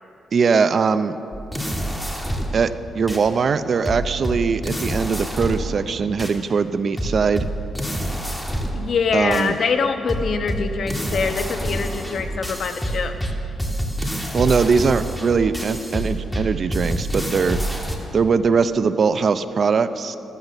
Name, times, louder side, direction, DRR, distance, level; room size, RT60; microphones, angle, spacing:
voice 1, 0.3-1.2 2.5-2.7 2.9-7.5 9.1-9.6 14.3-17.6 18.1-20.2, right 5 dB, 45° right, 12 dB, 0.5 m, -20 dB
sound 1, 1.3-2.6 3.1-3.2 3.9-5.8 6.2-6.4 7.0-8.9 9.3-9.5 10.1-18.0, right 1 dB, 5° left, 1.7 m, -27 dB
voice 2, 8.7-13.1, left 5 dB, 55° left, 7 dB, 1.1 m, -24 dB
15.0 x 14.0 x 6.7 m, 3.0 s
cardioid pair, 125°, 0 cm